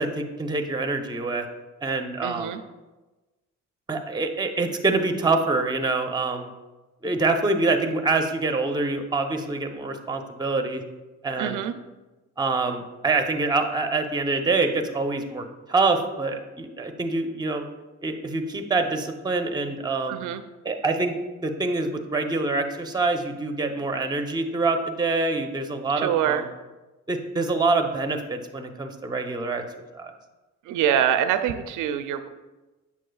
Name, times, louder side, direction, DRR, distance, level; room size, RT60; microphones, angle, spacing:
voice 1, 0.0-1.5 1.8-2.5 3.9-6.5 7.0-10.8 11.2-11.6 12.4-17.7 18.0-20.2 20.6-26.5 27.1-29.6 29.9-30.1, right 3 dB, 15° right, 5 dB, 0.7 m, -25 dB
voice 2, 2.2-2.6 11.4-11.7 20.1-20.4 26.0-26.5 30.7-32.3, right 9 dB, 80° right, 10 dB, 0.5 m, -24 dB
8.3 x 6.3 x 2.3 m, 1.1 s
cardioid pair, 90°, 30 cm